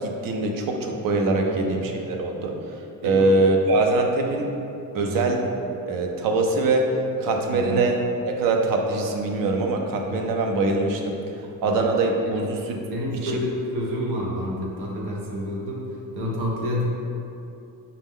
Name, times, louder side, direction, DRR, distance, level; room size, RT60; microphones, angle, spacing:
voice 1, 0.0-2.6 3.0-4.5 4.9-5.4 5.9-6.9 7.2-8.0 8.2-11.2 11.6-12.8 13.2-13.3, right 2 dB, 60° right, 3 dB, 0.5 m, -23 dB
voice 2, 1.4-1.8 3.0-3.3 5.0-5.3 7.5-7.8 10.1-10.3 11.6-11.8 12.2-12.4 12.9-16.9, left 1 dB, 85° right, -3 dB, 0.9 m, -29 dB
5.4 x 2.0 x 3.6 m, 2.8 s
cardioid pair, 170°, 38 cm